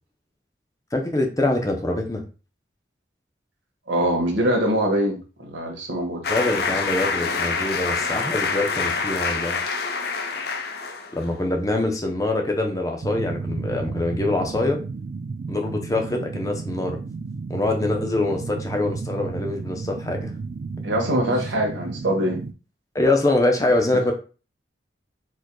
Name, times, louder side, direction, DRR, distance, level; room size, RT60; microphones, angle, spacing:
voice 1, 0.9-2.2 6.3-9.6 11.1-14.8 15.5-17.0 17.5-20.3 21.3-21.4 22.9-24.1, left 2 dB, 20° left, 3 dB, 0.6 m, -24 dB
voice 2, 3.9-6.2 20.8-22.4, right 1 dB, 90° right, 0 dB, 1.4 m, -23 dB
sound 1, 6.2-11.3, left 4 dB, 60° left, 0.6 m, -26 dB
sound 2, 13.0-22.5, right 4 dB, 50° right, 0.4 m, -33 dB
4.6 x 4.5 x 2.2 m, 0.34 s
head